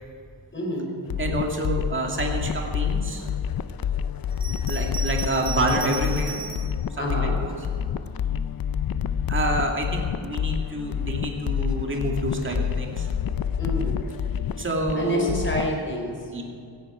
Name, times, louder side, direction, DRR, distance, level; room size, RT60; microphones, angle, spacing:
voice 1, 0.5-1.0 7.0-7.4 13.5-14.1 14.9-16.3, equal, 30° left, 0 dB, 4.2 m, -28 dB
sound 1, 1.0-15.7, left 8 dB, 55° left, 0.6 m, -28 dB
voice 2, 1.2-3.3 4.5-6.4 7.0-7.6 9.3-13.1 14.6-15.4 16.3-16.4, right 1 dB, 30° right, 1 dB, 2.2 m, -28 dB
Bell, 4.3-6.8 7.5-8.4, right 4 dB, 10° right, 2.7 m, -36 dB
16.0 x 16.0 x 5.0 m, 2.4 s
wide cardioid pair, 120°, 42 cm